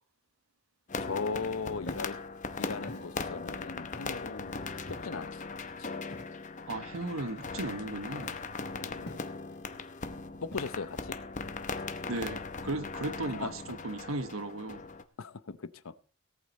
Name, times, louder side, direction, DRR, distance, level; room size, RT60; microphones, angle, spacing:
sound 1, 0.9-15.0, left 4 dB, 35° left, 0.8 m, -39 dB
voice 1, 1.0-2.2 2.6-4.6 4.9-5.4 5.8-5.9 8.8-9.2 10.4-11.2 13.4-13.5 15.2-15.9, left 4 dB, 75° left, 0.8 m, -38 dB
Walk footsteps, 1.8-2.2 2.9-3.1 3.9-4.3 4.9-5.2 6.1-6.4 7.4-7.8 8.2-8.5 9.1-9.6 10.5-11.0, left 1 dB, 55° left, 3.4 m, -47 dB
voice 2, 6.7-8.3 12.1-14.8, right 2 dB, 75° right, 1.2 m, -36 dB
18.0 x 8.5 x 4.3 m
head